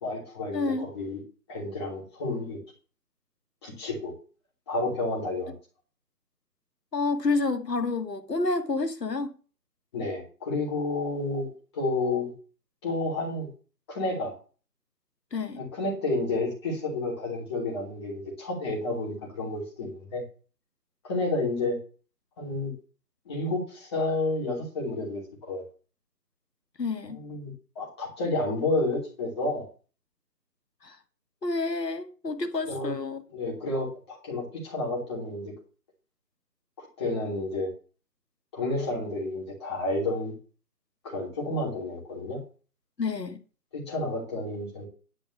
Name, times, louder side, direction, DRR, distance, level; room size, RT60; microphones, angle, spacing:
voice 1, 0.0-1.2 1.5-2.6 3.6-4.1 4.7-5.5 9.9-12.3 12.8-13.5 13.9-14.4 15.6-20.2 21.0-21.8 22.4-22.7 23.2-25.6 27.1-29.6 32.7-32.9 33.3-35.5 37.0-37.7 38.5-40.3 41.0-42.4 43.7-44.9, left 2 dB, 15° left, 3.1 m, -30 dB
voice 2, 0.5-0.9 6.9-9.4 15.3-15.6 26.8-27.2 30.8-31.0 31.4-33.2 43.0-43.4, left 3 dB, 85° left, 1.6 m, -29 dB
11.0 x 4.6 x 8.3 m
figure-of-eight pair, 165°, 48 cm